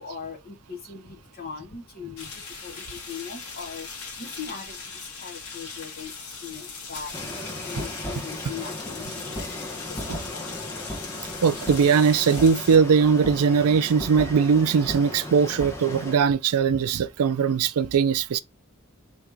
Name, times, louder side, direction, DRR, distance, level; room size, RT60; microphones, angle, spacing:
voice 1, 0.0-10.6, left 6 dB, 45° left, 1.0 m, -40 dB
sound 1, 2.2-12.8, left 4 dB, 80° left, 1.9 m, -39 dB
sound 2, 7.1-16.1, left 1 dB, 15° left, 1.1 m, -36 dB
voice 2, 11.4-18.4, right 6 dB, 80° right, 0.4 m, -20 dB
3.5 x 3.0 x 4.7 m
head